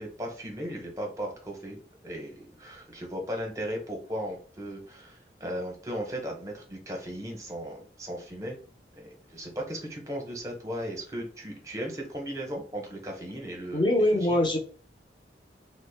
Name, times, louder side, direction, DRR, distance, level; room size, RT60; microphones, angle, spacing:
voice 1, 0.0-8.6 9.0-13.9 14.3-14.4, equal, 20° right, 1 dB, 0.8 m, -36 dB
voice 2, 13.7-14.6, left 1 dB, 25° left, 2 dB, 0.6 m, -23 dB
3.5 x 2.1 x 3.3 m, 0.41 s
head